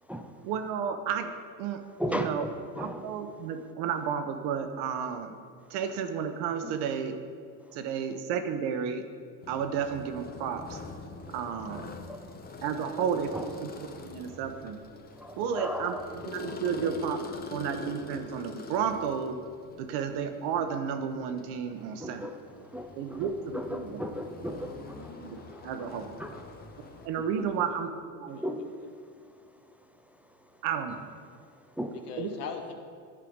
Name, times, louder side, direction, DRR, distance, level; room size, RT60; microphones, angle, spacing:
voice 1, 0.4-1.3 1.6-1.8 2.1-2.5 2.8-5.4 5.7-7.2 7.7-9.0 9.5-10.8 11.3-11.9 12.6-13.5 13.8-14.8 15.4-17.2 17.5-19.4 19.8-22.2 23.0-24.0 25.2-25.4 25.6-26.1 27.0-28.4 30.6-31.0 32.2-32.3, right 7 dB, 60° right, 8 dB, 1.0 m, -32 dB
voice 2, 2.0-3.1 6.6-6.7 11.7-12.2 13.3-13.5 14.3-14.4 15.2-16.1 16.7-17.0 21.9-26.5 27.0-27.1 27.4-27.5 28.4-28.7 30.9-31.0 31.8-31.9, equal, 5° right, 5 dB, 0.4 m, -37 dB
sound 1, 9.4-27.1, left 3 dB, 20° left, 0.8 m, -44 dB
voice 3, 31.9-32.7, left 6 dB, 90° left, 4 dB, 1.1 m, -41 dB
11.0 x 4.8 x 5.1 m, 2.1 s
supercardioid pair, 95°, 45 cm